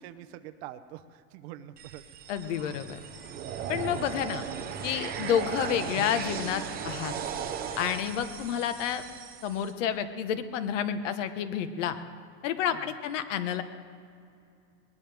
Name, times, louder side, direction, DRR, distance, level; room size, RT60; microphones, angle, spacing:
voice 1, 0.0-2.0 12.7-12.9, right 13 dB, 55° right, 9 dB, 0.8 m, -45 dB
sound 1, 1.8-9.7, right 7 dB, 25° right, 1.0 m, -37 dB
voice 2, 2.3-3.0 3.7-4.4 4.8-7.1 7.8-9.0 9.4-12.0 12.4-13.6, left 9 dB, 75° left, 10 dB, 1.3 m, -30 dB
20.0 x 19.0 x 3.5 m, 2.4 s
supercardioid pair, 165°, 37 cm